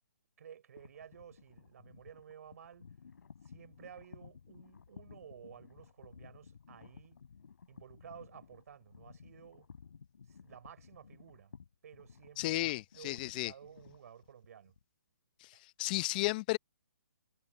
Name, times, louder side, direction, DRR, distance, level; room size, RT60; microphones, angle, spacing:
voice 1, 0.4-2.9 3.4-7.2 7.7-9.7 10.3-11.6 11.8-14.7 15.5-15.6, right 8 dB, 55° right, 5.7 m, -54 dB
sound 1, 0.8-14.8, left 6 dB, 70° left, 5.9 m, -56 dB
voice 2, 12.4-13.5 15.4-15.5 15.8-16.6, left 19 dB, 30° left, 0.7 m, -33 dB
hypercardioid pair, 150°, 10 cm